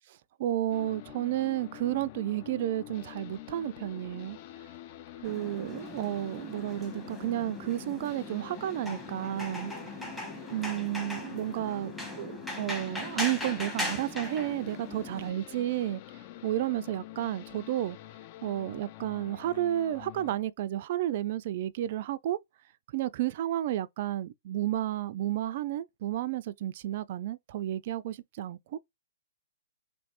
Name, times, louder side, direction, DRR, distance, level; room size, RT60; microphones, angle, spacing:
voice 1, 0.4-4.4 5.2-9.7 10.5-16.0 16.4-18.0 18.4-22.4 22.9-28.8, right 13 dB, 50° right, 0.3 m, -32 dB
sound 1, 0.7-20.4, left 13 dB, 40° left, 0.4 m, -46 dB
sound 2, 5.2-15.3, equal, 5° left, 1.2 m, -39 dB
3.1 x 3.1 x 2.9 m
hypercardioid pair, 135°, 0 cm